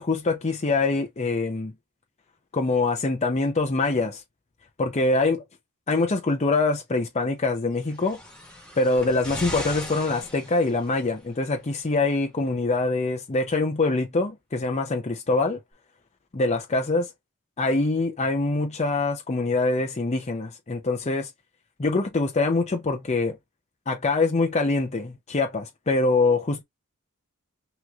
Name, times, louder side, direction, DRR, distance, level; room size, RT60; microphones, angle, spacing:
voice 1, 0.0-1.7 2.5-4.2 4.8-5.4 5.9-8.2 8.8-15.6 16.3-17.1 17.6-21.3 21.8-23.4 23.9-26.6, left 3 dB, 30° left, 0.6 m, -24 dB
sound 1, 7.8-11.2 12.1-12.2, left 1 dB, 5° left, 1.6 m, -38 dB
6.1 x 3.0 x 2.4 m
head